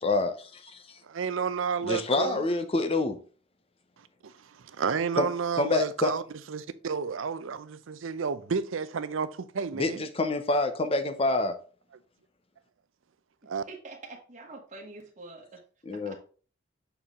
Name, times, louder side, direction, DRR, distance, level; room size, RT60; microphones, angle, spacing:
voice 1, 0.0-1.0 1.8-3.2 5.2-5.3 5.6-6.1 9.7-11.5 15.9-16.2, left 2 dB, 30° left, 0.7 m, -27 dB
voice 2, 1.1-2.4 4.2-6.2 6.5-10.0 13.5-13.6, right 5 dB, 85° right, 0.5 m, -31 dB
voice 3, 13.7-15.6 15.9-16.2, right 3 dB, 40° right, 1.3 m, -45 dB
6.9 x 4.3 x 3.6 m
head